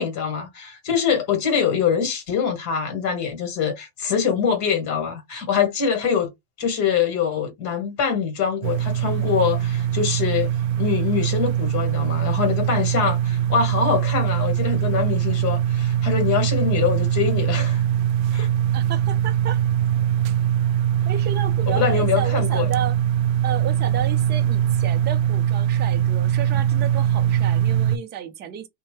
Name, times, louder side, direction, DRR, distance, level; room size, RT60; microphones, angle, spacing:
voice 1, 0.0-6.3 6.6-10.5 10.8-17.8 18.3-18.5 21.7-22.7, left 7 dB, 40° left, 1.7 m, -24 dB
sound 1, 8.6-28.0, right 10 dB, 65° right, 0.5 m, -22 dB
voice 2, 18.7-19.6 21.0-23.0 23.4-28.7, right 9 dB, 25° right, 0.6 m, -32 dB
2.6 x 2.2 x 3.2 m
hypercardioid pair, 120°, 44 cm